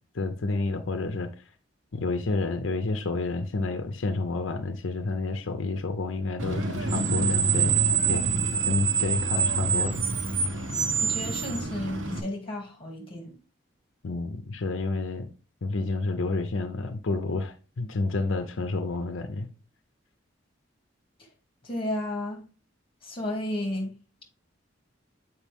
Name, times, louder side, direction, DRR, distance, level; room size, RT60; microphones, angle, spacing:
voice 1, 0.1-1.3 1.9-7.7 8.1-8.2 8.6-10.0 14.0-15.3 15.6-19.5, left 3 dB, 85° left, 0.6 m, -29 dB
Screech, 6.4-12.2, right 5 dB, 80° right, 1.1 m, -26 dB
voice 2, 11.0-13.4 21.6-22.4 23.0-23.9, left 1 dB, 25° left, 2.1 m, -32 dB
7.3 x 4.9 x 3.5 m
head